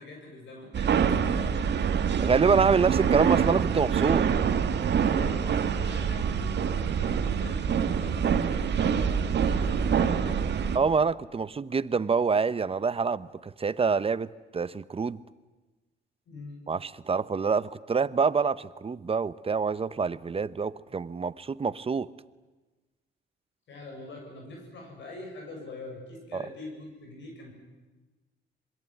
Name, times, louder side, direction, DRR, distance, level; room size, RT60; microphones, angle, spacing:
voice 1, 0.0-1.7 5.1-10.5 16.3-16.6 23.7-27.5, left 2 dB, 70° left, 1 dB, 7.6 m, -43 dB
sound 1, 0.7-10.8, right 7 dB, 60° right, 2.0 m, -26 dB
voice 2, 2.2-4.3 10.7-15.2 16.7-22.1 26.3-26.4, right 5 dB, 30° right, 16 dB, 0.9 m, -26 dB
26.5 x 22.0 x 9.3 m, 1.2 s
cardioid pair, 90°, 20 cm